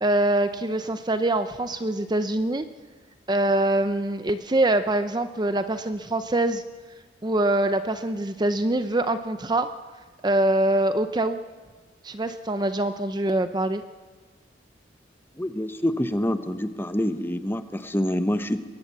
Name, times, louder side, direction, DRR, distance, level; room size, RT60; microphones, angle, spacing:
voice 1, 0.0-2.7 3.3-6.6 7.2-9.7 10.2-11.4 12.0-13.8, right 1 dB, 20° right, 10 dB, 0.6 m, -24 dB
voice 2, 15.4-18.6, left 1 dB, 10° left, 10 dB, 0.9 m, -26 dB
22.0 x 19.0 x 7.4 m, 1.4 s
head